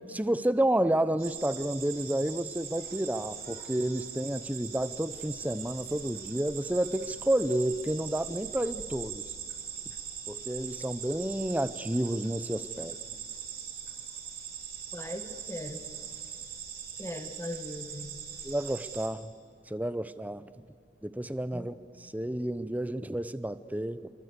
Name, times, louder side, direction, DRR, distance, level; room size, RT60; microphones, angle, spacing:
voice 1, 0.1-9.3 10.3-13.0 18.4-19.3 19.7-20.7 21.0-24.1, right 1 dB, 10° right, 14 dB, 0.6 m, -30 dB
sound 1, 1.2-19.1, right 8 dB, 55° right, 3.9 m, -41 dB
voice 2, 14.9-15.8 17.0-18.2 21.5-21.8, left 1 dB, 15° left, 7 dB, 1.7 m, -39 dB
28.5 x 23.5 x 8.1 m, 2.2 s
head